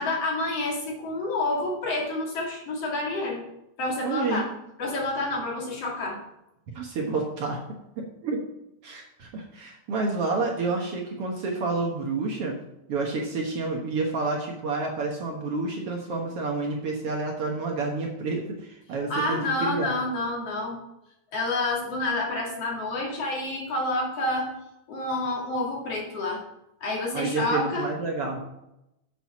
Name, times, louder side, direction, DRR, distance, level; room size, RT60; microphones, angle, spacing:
voice 1, 0.0-3.5 3.8-4.5 4.8-6.2 19.1-20.8 21.3-24.5 24.9-26.4 26.8-27.9, left 2 dB, 55° left, -2 dB, 3.2 m, -28 dB
voice 2, 4.0-4.4 6.8-7.6 8.0-8.4 8.8-12.6 12.9-20.0 27.1-28.4, right 3 dB, 60° right, 0 dB, 1.9 m, -29 dB
7.7 x 6.9 x 5.8 m, 0.87 s
omnidirectional pair, 3.4 m